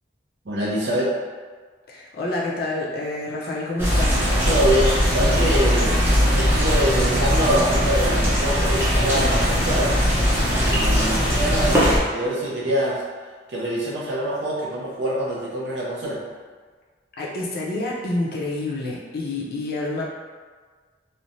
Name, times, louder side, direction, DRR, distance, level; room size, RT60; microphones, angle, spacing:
voice 1, 0.4-1.1 4.4-6.0 6.3-9.9 10.6-13.0 13.5-16.2, right 1 dB, 75° right, -5 dB, 0.7 m, -25 dB
voice 2, 1.9-4.2 17.2-20.0, left 2 dB, 60° left, -3 dB, 0.5 m, -28 dB
sound 1, 3.8-12.0, equal, 10° right, 0.6 m, -20 dB
3.1 x 2.1 x 2.6 m, 1.5 s
head